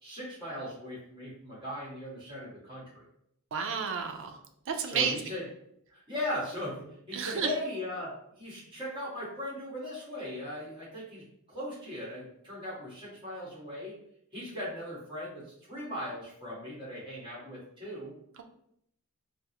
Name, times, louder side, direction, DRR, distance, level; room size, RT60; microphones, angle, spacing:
voice 1, 0.0-3.0 4.8-5.4 5.9-14.0 14.3-15.4 15.7-18.1, left 1 dB, 20° right, -8 dB, 1.4 m, -38 dB
voice 2, 3.5-4.4 4.7-5.2 7.1-7.5, right 6 dB, 60° right, 5 dB, 0.4 m, -31 dB
3.4 x 2.0 x 2.8 m, 0.73 s
head